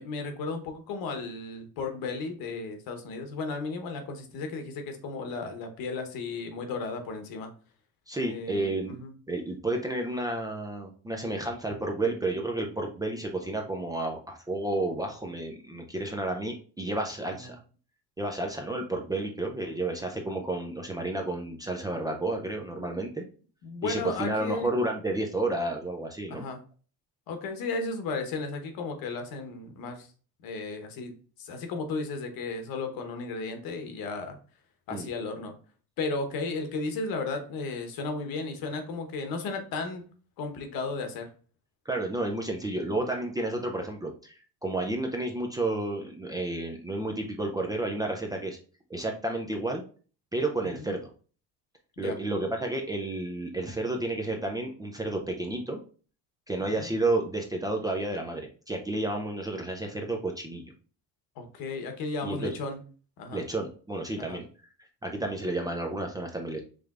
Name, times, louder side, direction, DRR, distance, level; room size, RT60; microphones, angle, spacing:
voice 1, 0.0-7.5 8.2-9.1 17.4-17.5 23.6-24.7 26.3-26.6 27.3-30.1 30.4-31.1 31.4-34.4 34.9-35.5 36.0-40.0 40.4-41.3 50.8-50.9 52.0-52.2 56.7-56.9 61.4-62.8 63.2-63.4 64.2-64.4, left 3 dB, 75° left, 6 dB, 1.0 m, -34 dB
voice 2, 8.1-9.0 9.3-17.6 18.2-23.2 23.8-26.5 34.9-35.1 41.9-48.6 48.9-49.8 50.3-51.1 52.0-55.8 56.5-60.7 62.2-62.6 63.3-64.5 64.8-66.6, right 2 dB, 10° right, 2 dB, 0.3 m, -31 dB
4.9 x 3.2 x 2.4 m, 0.39 s
cardioid pair, 160°, 35 cm